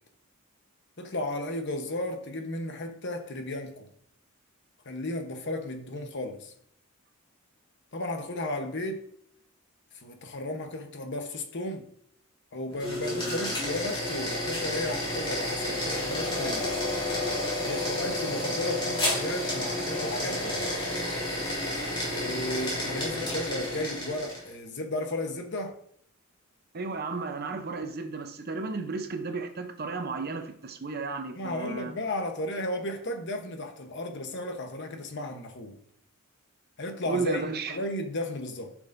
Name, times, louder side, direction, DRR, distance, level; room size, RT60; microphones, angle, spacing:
voice 1, 1.0-3.9 4.8-6.5 7.9-9.0 9.9-11.8 12.5-16.8 17.6-20.6 22.1-25.7 31.3-35.8 36.8-38.8, left 1 dB, 55° left, 1.0 m, -34 dB
sound 1, 12.7-24.5, left 1 dB, 20° left, 3.4 m, -30 dB
voice 2, 26.7-31.9 37.1-37.8, right 4 dB, 45° right, 0.7 m, -33 dB
10.0 x 6.2 x 2.6 m
head